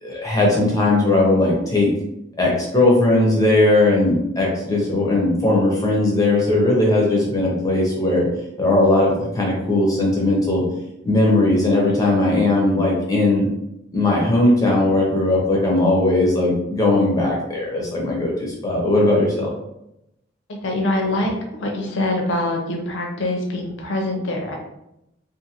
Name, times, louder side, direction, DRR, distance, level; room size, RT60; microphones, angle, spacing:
voice 1, 0.0-1.9 2.4-8.3 8.6-10.6 11.0-13.5 13.9-19.5, left 2 dB, 20° left, -3 dB, 0.5 m, -18 dB
voice 2, 20.5-21.3 21.6-24.6, left 1 dB, 75° left, 1 dB, 0.6 m, -24 dB
2.5 x 2.5 x 2.8 m, 0.85 s
head